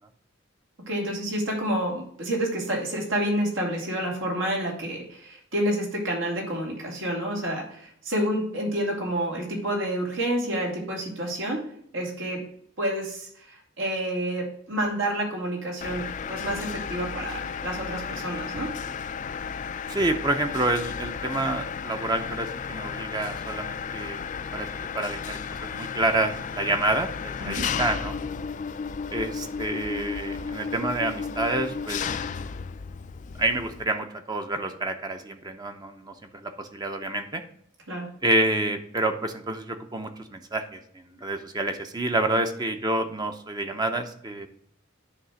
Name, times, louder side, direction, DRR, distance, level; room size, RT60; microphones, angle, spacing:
voice 1, 0.9-11.7 11.9-12.4 12.8-18.7 27.4-27.7 37.9-38.1, right 1 dB, 85° right, -2 dB, 2.8 m, -29 dB
Mechanisms, 15.8-33.8, left 6 dB, 40° left, 0.3 m, -34 dB
voice 2, 19.9-24.2 24.5-24.7 24.9-28.1 29.1-32.2 33.4-36.1 36.4-37.4 38.2-44.5, right 2 dB, 20° right, 6 dB, 0.6 m, -28 dB
9.6 x 3.3 x 6.3 m, 0.65 s
head